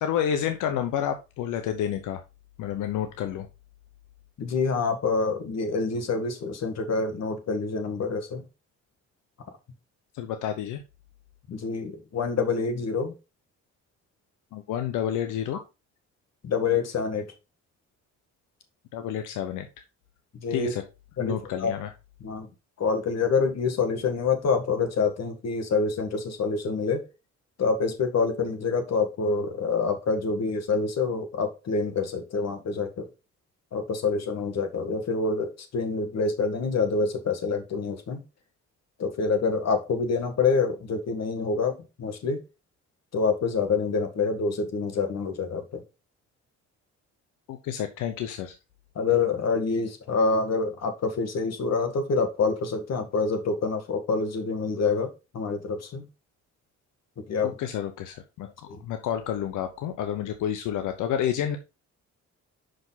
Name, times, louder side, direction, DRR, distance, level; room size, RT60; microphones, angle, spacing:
voice 1, 0.0-2.2 2.6-3.5 10.1-10.8 14.5-15.6 18.9-19.7 20.5-20.8 21.2-21.9 47.5-48.5 57.4-61.6, left 10 dB, 90° left, 7 dB, 0.8 m, -29 dB
voice 2, 4.4-8.4 11.5-13.1 16.4-17.3 20.3-20.7 21.2-21.7 22.2-22.5 22.8-27.1 27.6-33.1 33.7-38.2 39.0-42.4 43.1-45.8 49.0-56.1 57.3-57.5 58.7-58.8, left 4 dB, 60° left, 6 dB, 1.8 m, -26 dB
5.9 x 5.2 x 4.0 m, 0.28 s
cardioid pair, 90°, 30 cm